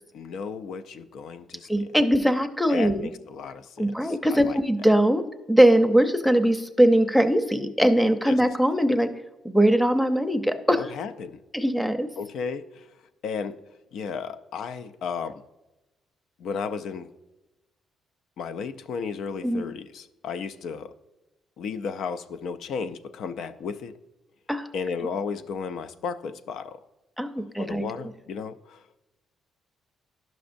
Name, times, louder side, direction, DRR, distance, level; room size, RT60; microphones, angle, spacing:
voice 1, 0.1-1.9 2.7-4.6 8.2-8.4 10.8-11.4 12.2-12.9 13.2-13.6 13.9-15.4 16.4-17.1 18.4-20.9 21.6-23.9 24.7-26.8 27.4-28.8, left 5 dB, 75° left, 12 dB, 0.4 m, -34 dB
voice 2, 1.7-3.1 3.8-5.2 5.5-9.1 9.4-10.9 11.5-12.1 19.4-19.6 24.5-24.7 27.2-27.9, right 1 dB, 5° left, 9 dB, 0.6 m, -21 dB
11.5 x 6.1 x 2.6 m, 1.0 s
cardioid pair, 90°, 0 cm